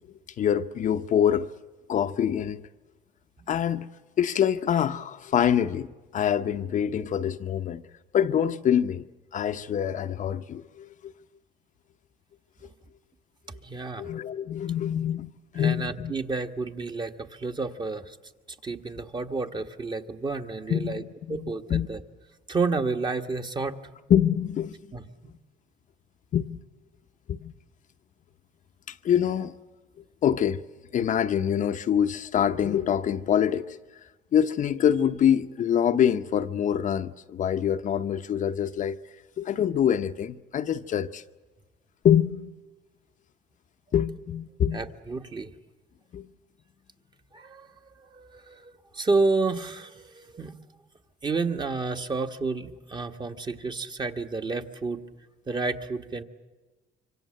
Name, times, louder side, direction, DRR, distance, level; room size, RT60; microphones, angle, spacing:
voice 1, 0.4-1.5 1.9-2.7 3.5-3.9 4.2-7.8 8.1-9.1 9.3-11.1 14.0-16.1 20.7-21.9 24.1-24.7 26.3-26.6 27.3-27.5 28.9-29.5 30.2-30.6 30.9-33.8 34.3-39.0 39.4-41.2 42.0-42.5 43.9-44.8 46.1-46.3, left 9 dB, 50° left, 0.8 m, -25 dB
voice 2, 13.6-14.1 15.5-18.2 18.6-21.0 21.3-22.0 22.5-23.9 24.9-25.3 44.7-45.5 47.3-50.5 51.2-55.0 55.5-56.2, right 3 dB, 25° right, 1.5 m, -30 dB
26.0 x 24.5 x 7.7 m
cardioid pair, 110°, 17 cm